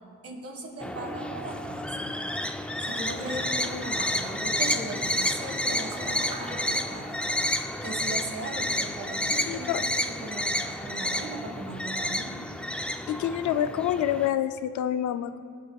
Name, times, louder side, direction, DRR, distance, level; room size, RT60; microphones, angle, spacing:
voice 1, 0.2-2.1 2.8-7.4 7.8-12.5, right 2 dB, 50° right, 3 dB, 1.7 m, -38 dB
sound 1, 0.8-14.3, left 1 dB, 5° left, 0.4 m, -30 dB
sound 2, 2.8-10.8, right 2 dB, 90° right, 2.1 m, -45 dB
voice 2, 9.5-9.8 13.1-15.4, left 11 dB, 75° left, 12 dB, 0.5 m, -27 dB
19.0 x 9.0 x 2.3 m, 2.2 s
cardioid pair, 90°, 30 cm